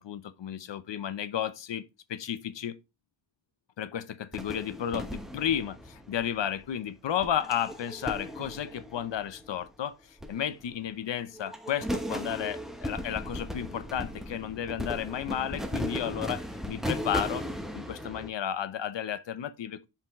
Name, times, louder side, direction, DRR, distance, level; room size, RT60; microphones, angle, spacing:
voice 1, 0.0-2.8 3.8-17.5 17.7-19.9, left 9 dB, 65° left, 0.8 m, -33 dB
sound 1, 4.3-6.6 7.2-9.7 10.2-11.0 11.3-18.3, equal, ahead, 0.9 m, -37 dB
5.8 x 5.0 x 3.6 m
wide cardioid pair, 125°, 47 cm